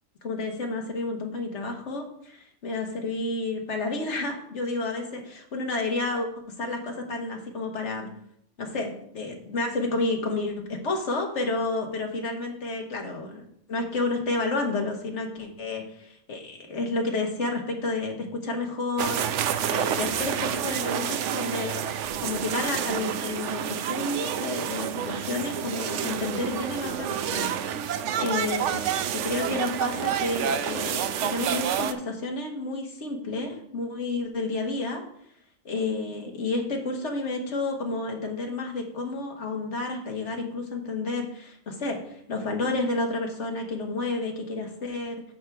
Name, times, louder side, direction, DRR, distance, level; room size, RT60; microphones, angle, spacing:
voice 1, 0.2-6.3 6.6-8.1 8.6-13.4 13.7-19.2 19.7-21.9 22.2-27.8 28.2-28.9 29.2-35.0 35.6-45.2, left 2 dB, 65° left, 2 dB, 1.7 m, -30 dB
sound 1, 19.0-31.9, right 9 dB, 75° right, 0.9 m, -29 dB
13.5 x 4.7 x 3.5 m, 0.70 s
omnidirectional pair, 1.3 m